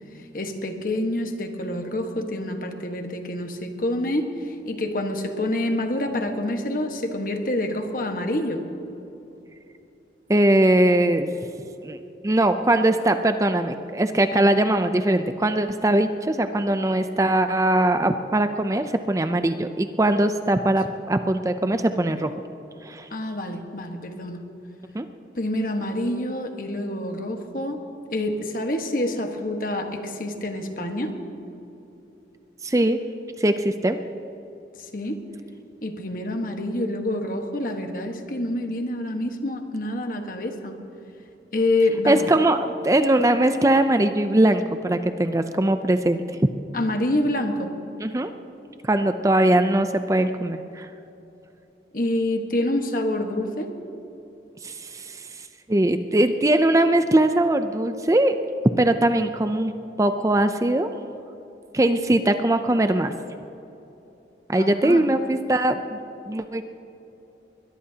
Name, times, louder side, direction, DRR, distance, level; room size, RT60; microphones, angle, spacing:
voice 1, 0.3-8.6 23.1-24.4 25.4-27.8 28.1-31.2 34.9-35.2 35.8-40.8 41.5-42.3 46.7-47.7 51.9-53.7 64.6-65.1, left 1 dB, 50° left, 4 dB, 1.4 m, -27 dB
voice 2, 10.3-11.3 11.8-12.0 12.2-22.3 22.8-23.1 24.9-25.1 32.6-33.0 33.4-34.0 42.1-46.2 48.0-48.3 48.8-50.9 54.6-55.2 55.7-58.4 58.8-59.7 60.0-60.9 61.7-63.1 64.5-66.0 66.3-66.6, right 1 dB, 20° right, 9 dB, 0.5 m, -21 dB
21.5 x 21.5 x 2.9 m, 3.0 s
head